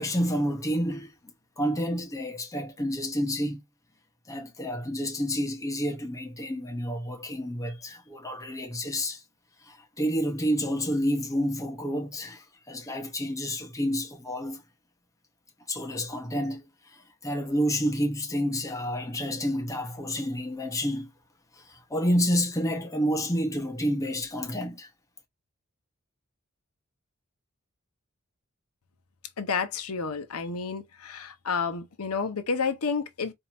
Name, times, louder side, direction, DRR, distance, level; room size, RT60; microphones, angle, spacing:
voice 1, 0.0-3.6 4.3-9.2 9.6-14.6 15.7-21.1 21.6-24.9, equal, 15° left, 0.9 m, -29 dB
voice 2, 29.4-33.3, left 5 dB, 75° left, 0.8 m, -30 dB
4.4 x 2.8 x 2.5 m
head